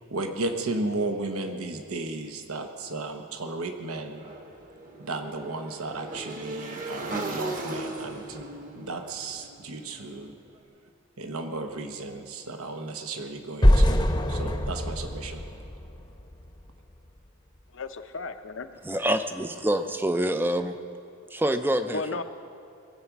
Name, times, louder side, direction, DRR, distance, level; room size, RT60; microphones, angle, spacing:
voice 1, 0.1-4.2 5.0-8.4 8.7-10.3 11.2-14.0 14.3-15.4, right 2 dB, 80° right, 6 dB, 1.0 m, -34 dB
Motorcycle / Engine, 4.2-10.3, right 2 dB, 40° right, 1.2 m, -37 dB
sound 1, 13.6-16.6, equal, 20° left, 0.8 m, -23 dB
voice 2, 17.7-18.7 21.9-22.2, left 4 dB, 55° left, 8 dB, 0.6 m, -34 dB
voice 3, 18.8-20.7 21.3-22.2, right 1 dB, 10° right, 8 dB, 0.5 m, -26 dB
21.0 x 8.3 x 6.0 m, 2.5 s
head